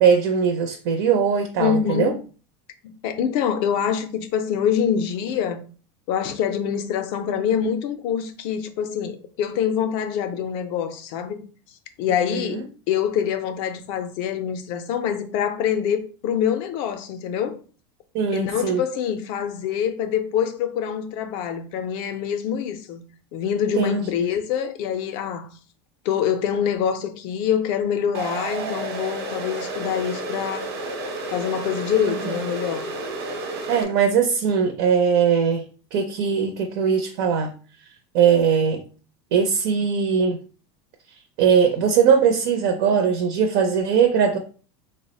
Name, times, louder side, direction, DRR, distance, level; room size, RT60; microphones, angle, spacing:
voice 1, 0.0-2.1 12.3-12.4 18.1-18.8 23.8-24.0 32.1-32.3 33.7-35.6 35.9-37.5 38.1-38.8 39.3-40.4 41.4-44.4, right 7 dB, 45° right, 0.5 m, -20 dB
voice 2, 1.6-2.1 2.8-5.6 6.1-11.4 12.0-17.6 18.3-23.0 23.3-25.5 26.0-30.7 31.3-32.9, left 8 dB, 40° left, 0.4 m, -25 dB
sound 1, 28.1-33.8, right 2 dB, 85° right, 1.0 m, -31 dB
3.1 x 2.0 x 4.0 m
supercardioid pair, 175°, 13 cm